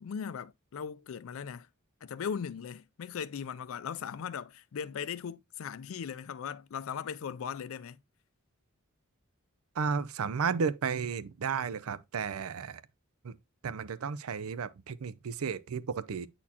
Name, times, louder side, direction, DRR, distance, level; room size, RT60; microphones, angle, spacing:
voice 1, 0.0-1.7 2.0-8.0, left 7 dB, 70° left, 0.4 m, -38 dB
voice 2, 9.8-12.8 13.2-13.4 13.6-16.3, right 6 dB, 85° right, 0.5 m, -33 dB
8.5 x 4.2 x 2.8 m
head